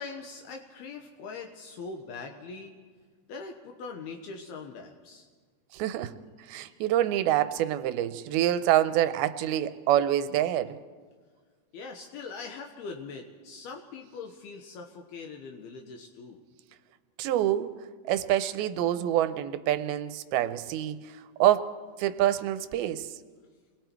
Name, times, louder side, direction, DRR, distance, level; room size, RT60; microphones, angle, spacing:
voice 1, 0.0-2.7 3.3-5.3 11.7-16.4, left 4 dB, 75° left, 3 dB, 3.0 m, -42 dB
voice 2, 5.7-6.1 6.5-10.8 17.2-17.7 18.1-21.0 21.4-21.7 22.0-23.1, right 12 dB, 80° right, 11 dB, 2.4 m, -26 dB
29.5 x 22.0 x 4.6 m, 1.5 s
omnidirectional pair, 4.8 m